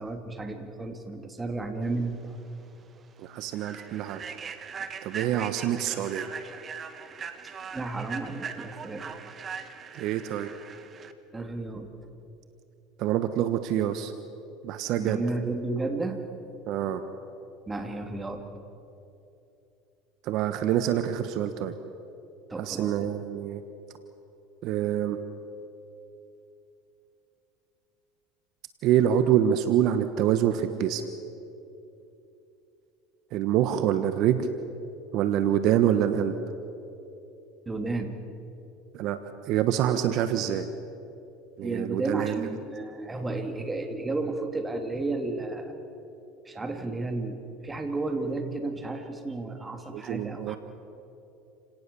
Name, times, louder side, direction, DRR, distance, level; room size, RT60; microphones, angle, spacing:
voice 1, 0.0-2.2 7.7-9.2 11.3-11.9 15.0-16.2 17.7-18.5 22.5-23.1 37.7-38.1 41.6-45.8 46.4-50.6, right 2 dB, 15° right, 6 dB, 2.7 m, -32 dB
Human voice / Train, 2.3-2.4 2.8-3.0 3.5-11.1, right 6 dB, 35° right, 1.6 m, -40 dB
voice 2, 3.2-4.2 5.0-6.3 9.9-10.5 13.0-14.1 14.6-15.2 16.7-17.0 20.2-21.7 22.6-23.6 24.6-25.2 28.8-31.0 33.3-34.5 35.1-36.4 38.9-39.2 39.5-40.7 41.6-42.4 49.9-50.6, right 10 dB, 60° right, 10 dB, 1.2 m, -26 dB
28.5 x 18.5 x 7.0 m, 2.8 s
supercardioid pair, 100°, 0 cm